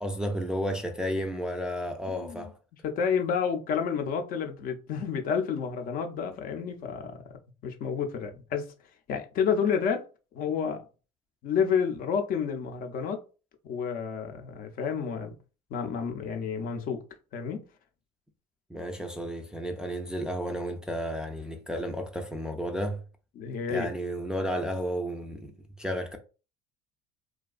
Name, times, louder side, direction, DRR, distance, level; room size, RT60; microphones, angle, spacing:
voice 1, 0.0-2.5 18.7-23.0 23.7-26.2, equal, 5° right, 0.3 m, -32 dB
voice 2, 2.1-2.5 2.8-7.2 7.6-8.7 9.1-10.1 10.3-10.8 11.4-13.2 13.7-15.4 15.7-17.0 17.3-17.6 23.4-23.9, left 6 dB, 55° left, 0.5 m, -30 dB
2.5 x 2.2 x 2.3 m
supercardioid pair, 90°, 18 cm